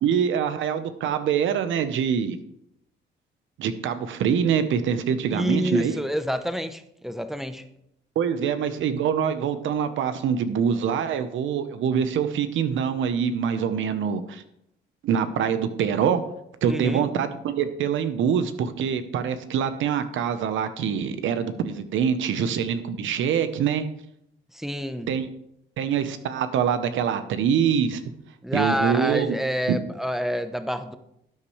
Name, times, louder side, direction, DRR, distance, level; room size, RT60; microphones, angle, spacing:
voice 1, 0.0-2.4 3.6-5.9 8.1-14.4 15.0-16.2 16.6-23.9 25.1-25.3 25.8-28.0 28.5-29.4 29.7-29.8, right 7 dB, 80° right, 10 dB, 1.0 m, -24 dB
voice 2, 5.3-7.7 16.6-17.0 24.5-25.1 28.4-31.0, equal, ahead, 9 dB, 0.9 m, -28 dB
12.5 x 8.6 x 3.3 m, 0.77 s
cardioid pair, 90°, 20 cm